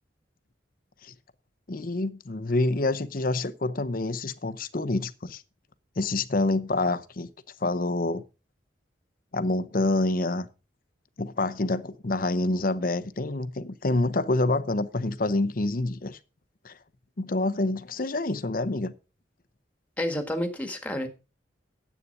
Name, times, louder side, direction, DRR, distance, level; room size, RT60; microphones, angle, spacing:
voice 1, 1.7-5.4 6.0-7.3 7.6-8.2 9.3-10.5 11.2-16.2 16.6-16.8 17.2-18.9, left 2 dB, 50° left, 0.8 m, -27 dB
voice 2, 20.0-21.1, left 1 dB, 10° left, 1.6 m, -29 dB
9.8 x 8.3 x 5.3 m
head